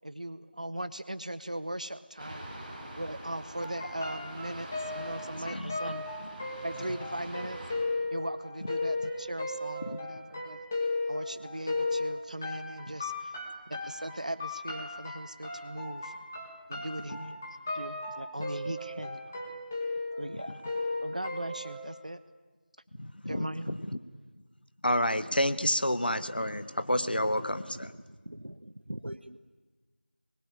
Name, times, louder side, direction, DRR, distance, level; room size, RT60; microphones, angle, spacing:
voice 1, 0.0-2.4 3.0-6.1 6.6-7.6 8.1-10.6 11.1-13.3 13.8-16.1 16.7-17.4 17.7-19.3 20.2-20.5 21.0-22.2 23.3-23.7, right 1 dB, 45° right, 13 dB, 0.9 m, -39 dB
sound 1, 2.2-7.7, right 1 dB, 5° right, 2.4 m, -44 dB
sound 2, 3.6-21.9, left 2 dB, 10° left, 1.5 m, -36 dB
voice 2, 5.4-5.9 6.8-6.9 9.8-10.0 12.9-13.0 17.1-17.2 20.3-20.4 23.0-24.0 24.8-27.9, left 1 dB, 60° left, 12 dB, 1.4 m, -30 dB
voice 3, 27.7-29.4, right 1 dB, 80° right, 10 dB, 1.0 m, -42 dB
24.5 x 21.0 x 9.9 m, 1.3 s
figure-of-eight pair, 175°, 6 cm